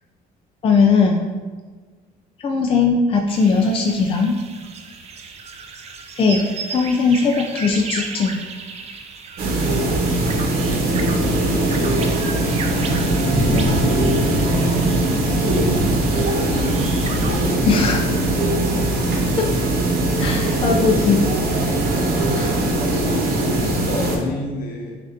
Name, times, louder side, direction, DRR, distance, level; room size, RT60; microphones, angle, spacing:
voice 1, 0.6-1.2 2.4-4.4 6.2-8.4 17.7-18.0 19.4-19.5 20.2-21.3 22.4-22.5, left 4 dB, 35° left, 1 dB, 0.4 m, -18 dB
sound 1, 3.3-17.5, right 5 dB, 40° right, 0.4 m, -35 dB
sound 2, 9.4-24.2, right 1 dB, 65° right, 0.9 m, -20 dB
voice 2, 13.5-14.2 15.2-16.0 16.2-18.0 22.9-25.0, left 3 dB, 60° left, 1 dB, 0.8 m, -30 dB
6.4 x 2.5 x 2.7 m, 1.4 s
cardioid pair, 110°, 17 cm